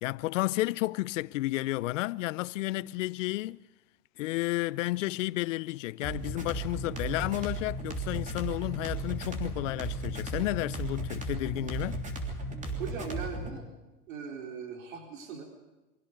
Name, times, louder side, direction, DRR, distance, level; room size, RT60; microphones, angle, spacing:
voice 1, 0.0-3.6 4.2-12.0, left 18 dB, 55° left, 0.7 m, -32 dB
sound 1, 6.0-13.6, right 1 dB, 15° right, 3.2 m, -35 dB
voice 2, 12.8-13.7 14.1-15.4, right 6 dB, 60° right, 4.2 m, -39 dB
24.5 x 16.5 x 6.8 m
hypercardioid pair, 130°, 45 cm